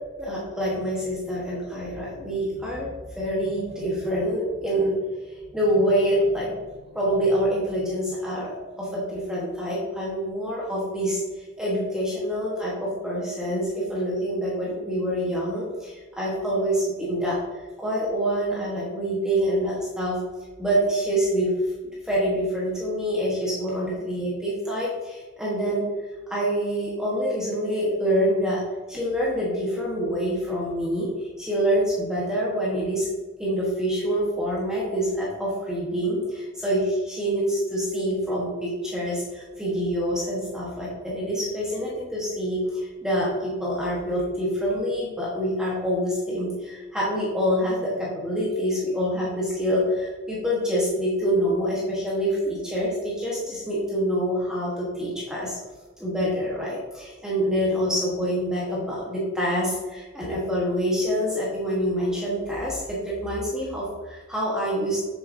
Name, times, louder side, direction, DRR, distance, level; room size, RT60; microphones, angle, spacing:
voice 1, 0.2-4.9 5.3-6.5 6.9-17.4 17.8-20.2 20.6-21.5 22.0-25.8 26.3-28.6 28.9-31.1 31.4-33.1 33.4-55.6 56.0-65.0, equal, 5° right, -6 dB, 1.3 m, -26 dB
7.8 x 6.6 x 2.7 m, 1.3 s
head